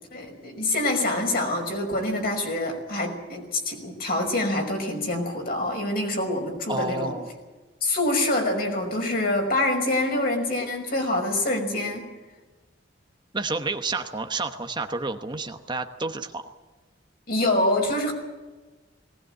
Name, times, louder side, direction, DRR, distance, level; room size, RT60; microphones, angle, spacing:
voice 1, 0.1-7.1 7.8-12.0 17.3-18.1, left 1 dB, 55° left, 2 dB, 5.8 m, -26 dB
voice 2, 6.7-7.3 13.3-16.4, right 3 dB, 25° right, 6 dB, 1.1 m, -30 dB
19.5 x 19.0 x 8.9 m, 1.2 s
head